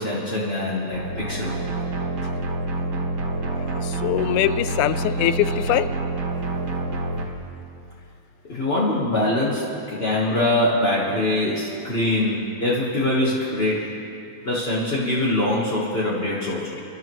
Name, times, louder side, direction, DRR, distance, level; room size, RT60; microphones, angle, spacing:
voice 1, 0.0-1.6 8.5-13.9 14.4-16.6, left 1 dB, 50° left, -6 dB, 0.7 m, -23 dB
sound 1, 0.9-7.3, right 2 dB, 60° right, 2.1 m, -27 dB
voice 2, 3.6-5.9, left 12 dB, 90° left, 13 dB, 2.0 m, -23 dB
30.0 x 11.5 x 3.1 m, 2.6 s
omnidirectional pair, 3.5 m